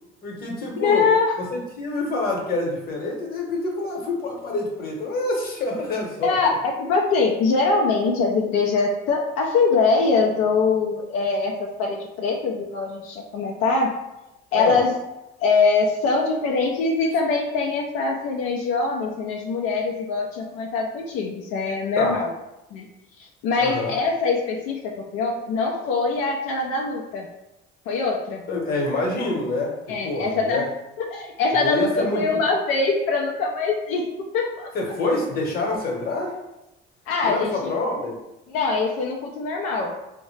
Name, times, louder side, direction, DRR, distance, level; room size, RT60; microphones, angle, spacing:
voice 1, 0.2-1.1 1.4-6.4 14.5-14.8 22.0-22.2 23.6-23.9 28.5-30.6 31.5-32.4 34.7-36.4 37.2-38.1, left 2 dB, 45° left, 0 dB, 0.9 m, -27 dB
voice 2, 0.8-1.3 6.2-6.5 6.8-13.9 14.5-15.0 15.4-22.3 22.7-22.9 23.4-27.3 27.9-28.4 29.9-30.6 31.1-34.1 34.3-34.7 37.1-37.7 38.5-39.9, left 4 dB, 85° left, 0 dB, 0.4 m, -23 dB
3.6 x 2.1 x 3.1 m, 0.94 s
cardioid pair, 105°, 21 cm